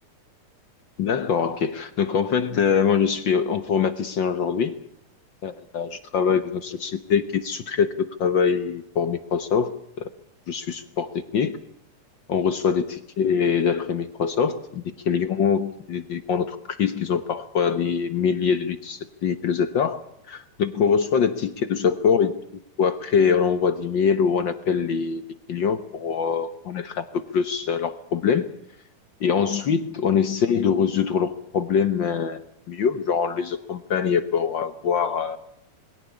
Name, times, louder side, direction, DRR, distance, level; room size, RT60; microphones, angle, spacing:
voice 1, 1.0-4.8 5.4-10.1 10.5-11.6 12.3-22.4 22.8-25.2 25.5-28.5 29.2-32.4 32.7-35.4, left 6 dB, 60° left, 12 dB, 1.2 m, -23 dB
21.5 x 17.0 x 8.5 m, 0.76 s
omnidirectional pair, 3.4 m